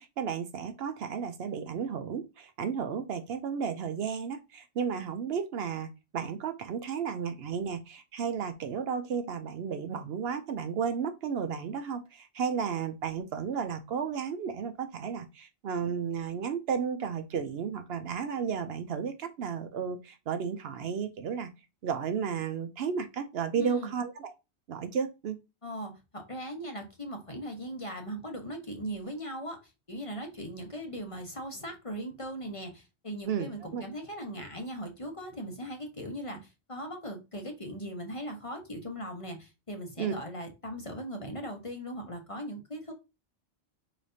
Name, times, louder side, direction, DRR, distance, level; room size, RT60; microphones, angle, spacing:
voice 1, 0.0-21.5 21.8-24.3 24.7-25.4 33.3-33.8 40.0-40.1, right 6 dB, 70° right, 9 dB, 0.8 m, -33 dB
voice 2, 23.5-23.9 25.6-42.9, equal, 30° left, 4 dB, 0.9 m, -39 dB
4.9 x 4.0 x 2.6 m, 0.26 s
omnidirectional pair, 1.1 m